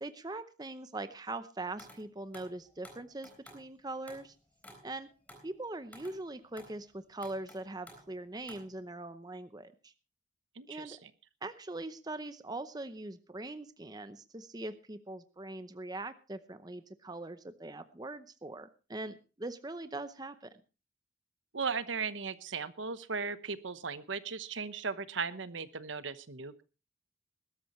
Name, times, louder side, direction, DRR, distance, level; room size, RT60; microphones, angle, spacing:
voice 1, 0.0-4.3 4.8-5.1 5.4-9.9 10.7-11.0 11.4-20.5, right 2 dB, 20° right, 11 dB, 0.7 m, -42 dB
sound 1, 1.8-2.0 2.3-3.7 4.1-4.3 4.6-6.8 7.2-8.2 8.5-8.8, equal, 10° left, 3.9 m, -54 dB
voice 2, 10.6-11.1 21.5-26.6, right 5 dB, 75° right, 13 dB, 1.0 m, -37 dB
20.5 x 12.5 x 3.1 m, 0.33 s
head